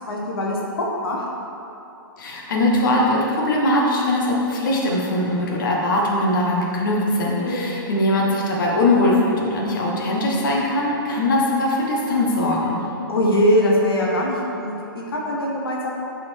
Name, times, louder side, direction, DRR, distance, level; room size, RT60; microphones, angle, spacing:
voice 1, 0.1-0.6 1.0-1.3 7.4-7.8 13.1-15.9, equal, 85° left, -3 dB, 1.3 m, -22 dB
voice 2, 2.2-12.8, left 1 dB, 60° left, -3 dB, 1.3 m, -21 dB
7.5 x 4.2 x 4.6 m, 2.9 s
hypercardioid pair, 145°, 12 cm